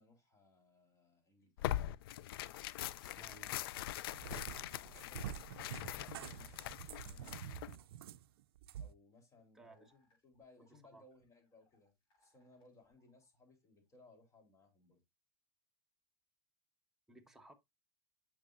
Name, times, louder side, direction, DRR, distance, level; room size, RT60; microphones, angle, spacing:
voice 1, 0.0-1.8 4.6-7.7 8.8-11.9 12.2-15.0, left 2 dB, 25° left, 3.4 m, -65 dB
Tearing, 1.6-7.8, left 13 dB, 75° left, 0.5 m, -42 dB
voice 2, 3.0-3.5 9.5-9.9 10.6-11.0 17.1-17.5, right 2 dB, 5° right, 1.4 m, -59 dB
Cat, 3.8-8.9, right 10 dB, 85° right, 0.4 m, -48 dB
sound 1, 9.6-13.9, equal, 40° left, 5.3 m, -79 dB
8.3 x 6.1 x 2.5 m
hypercardioid pair, 110°, 12 cm